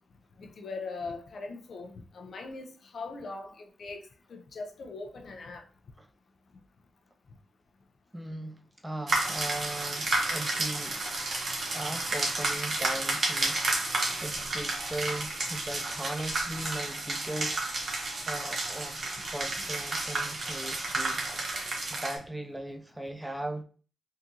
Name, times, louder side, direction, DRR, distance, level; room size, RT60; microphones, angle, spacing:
voice 1, 0.4-4.0 4.3-5.6, left 3 dB, 65° left, 0.5 m, -40 dB
voice 2, 8.1-11.0 11.7-17.7 18.3-21.2 21.6-23.6, right 1 dB, 10° right, 0.5 m, -38 dB
sound 1, 9.1-22.2, right 2 dB, 55° right, 0.9 m, -31 dB
3.6 x 2.5 x 2.8 m
cardioid pair, 70°, 0 cm